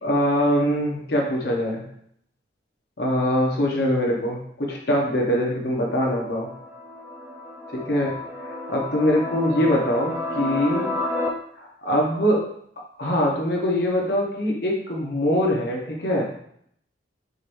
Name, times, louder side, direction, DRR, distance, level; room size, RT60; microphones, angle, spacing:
voice 1, 0.0-1.8 3.0-6.5 7.7-8.1 8.4-10.9 11.6-12.5 13.0-16.3, equal, 65° left, -1 dB, 1.0 m, -23 dB
sound 1, 5.8-11.3, left 2 dB, 10° right, 0.4 m, -31 dB
5.0 x 3.1 x 2.6 m, 0.67 s
head